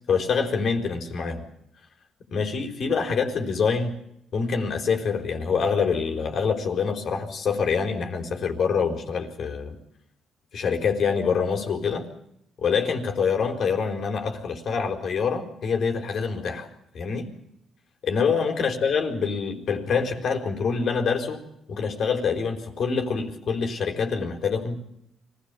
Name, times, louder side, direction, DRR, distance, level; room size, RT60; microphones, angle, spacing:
voice 1, 0.1-1.4 2.3-4.0 4.3-9.7 10.5-12.1 12.6-16.7 16.9-17.3 18.0-21.4 21.7-24.8, left 5 dB, 60° left, 5 dB, 4.4 m, -25 dB
25.0 x 17.5 x 8.4 m, 0.77 s
cardioid pair, 90°, 0 cm